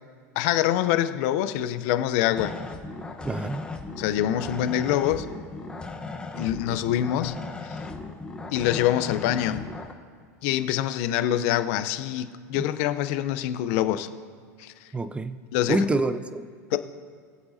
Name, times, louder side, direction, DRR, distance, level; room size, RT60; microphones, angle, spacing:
voice 1, 0.4-2.5 4.0-5.3 6.3-7.4 7.6-7.8 8.5-9.7 10.4-14.1 14.6-14.9 15.5-15.8 16.7-16.8, left 12 dB, 60° left, 12 dB, 0.7 m, -25 dB
sound 1, 2.3-9.9, left 3 dB, 10° left, 1.1 m, -37 dB
voice 2, 3.2-3.6 12.5-12.6 14.9-15.4 15.7-16.8, right 2 dB, 15° right, 12 dB, 0.6 m, -27 dB
22.0 x 7.9 x 2.8 m, 2.1 s
hypercardioid pair, 105°, 9 cm